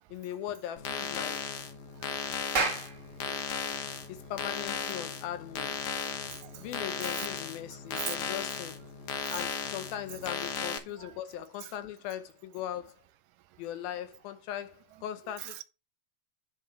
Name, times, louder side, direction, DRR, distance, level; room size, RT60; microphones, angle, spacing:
voice 1, 0.1-1.6 4.1-5.8 6.6-8.8 9.3-13.0 13.6-15.6, left 11 dB, 90° left, 2.8 m, -39 dB
sound 1, 0.8-10.8, left 6 dB, 65° left, 1.5 m, -36 dB
voice 2, 2.2-2.5 3.2-3.4 6.0-6.7 7.2-7.3 7.9-8.2 9.2-9.3 11.0-11.1 11.6-11.7 15.4-15.5, right 15 dB, 80° right, 2.1 m, -41 dB
Clapping, 2.5-7.2, right 4 dB, 55° right, 0.8 m, -36 dB
9.7 x 5.2 x 4.9 m
omnidirectional pair, 4.1 m